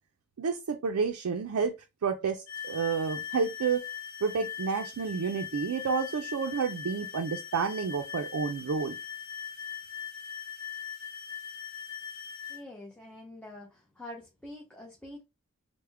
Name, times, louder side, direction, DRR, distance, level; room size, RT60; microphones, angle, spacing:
voice 1, 0.4-1.7 2.0-3.8 4.2-9.0, right 5 dB, 75° right, 0.4 m, -30 dB
sound 1, 2.5-12.6, left 8 dB, 65° left, 0.7 m, -40 dB
voice 2, 12.5-15.2, left 1 dB, 5° left, 0.5 m, -46 dB
3.5 x 2.1 x 3.3 m
head